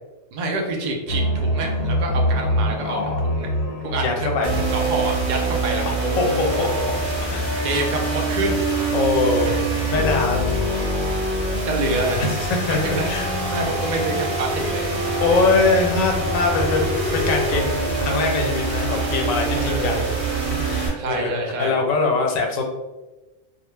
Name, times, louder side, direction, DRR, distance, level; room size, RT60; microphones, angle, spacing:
voice 1, 0.3-3.5 3.8-4.3 4.7-6.2 7.6-8.6 9.5-9.6 11.7-12.2 12.7-14.9 19.6-20.1 21.0-21.8, right 2 dB, 70° right, 1 dB, 0.4 m, -27 dB
sound 1, 1.1-15.8 16.1-18.2, left 1 dB, 65° left, 0.7 m, -29 dB
voice 2, 2.8-3.2 4.0-4.6 6.2-6.7 7.3-7.5 7.9-8.0 8.9-9.6 9.9-10.5 12.2-12.8 13.0-13.3 15.2-20.1 20.6-21.3 21.6-22.6, left 3 dB, 85° left, 2 dB, 1.0 m, -22 dB
sound 2, 4.4-20.9, right 2 dB, 45° right, 0.9 m, -25 dB
2.3 x 2.1 x 3.1 m, 1.1 s
omnidirectional pair, 1.3 m